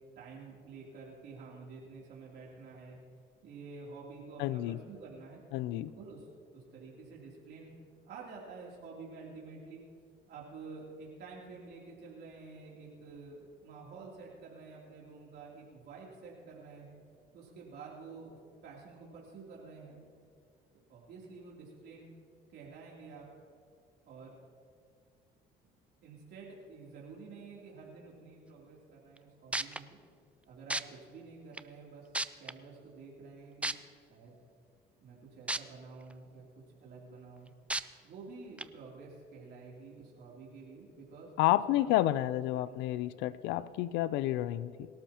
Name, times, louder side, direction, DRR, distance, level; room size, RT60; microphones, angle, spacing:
voice 1, 0.2-3.0 3.4-5.4 5.7-6.3 6.5-7.7 8.0-9.8 10.3-17.0 17.3-18.4 18.6-20.0 20.9-22.1 22.5-23.3 24.0-24.4 26.0-30.0 30.5-32.1 32.4-33.8 34.1-34.4 35.0-36.4 36.8-37.5 38.0-41.3 41.7-42.1 42.6-43.2, right 4 dB, 65° right, -4 dB, 3.1 m, -49 dB
voice 2, 4.4-4.8 5.5-5.9 41.4-44.9, left 14 dB, 80° left, 17 dB, 0.4 m, -30 dB
sound 1, 29.2-29.3 29.5-29.8 30.7-30.8 31.6-31.7 32.1-32.5 33.6-33.7 35.5-35.6 36.1-36.2 37.7-37.8 38.6-38.7, right 2 dB, 5° right, 0.4 m, -32 dB
23.0 x 12.5 x 2.9 m, 2.1 s
supercardioid pair, 90°, 18 cm